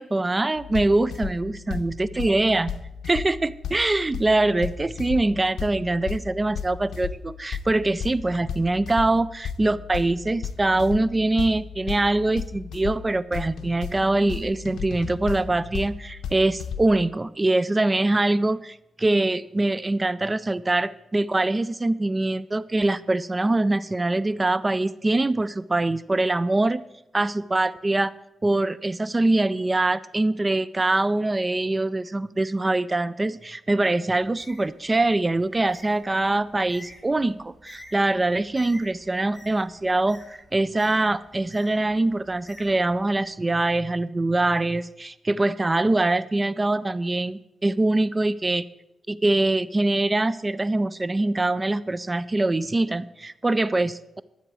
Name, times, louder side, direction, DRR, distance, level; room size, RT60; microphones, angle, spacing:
voice 1, 0.0-2.7 3.1-26.8 27.1-28.1 28.4-48.6 49.1-54.2, right 2 dB, 25° right, 17 dB, 0.3 m, -23 dB
sound 1, 0.6-17.1, left 7 dB, 85° left, 0.6 m, -35 dB
Bird, 34.2-43.3, left 1 dB, 15° left, 2.4 m, -50 dB
13.0 x 7.8 x 4.8 m, 0.88 s
cardioid pair, 85°, 0 cm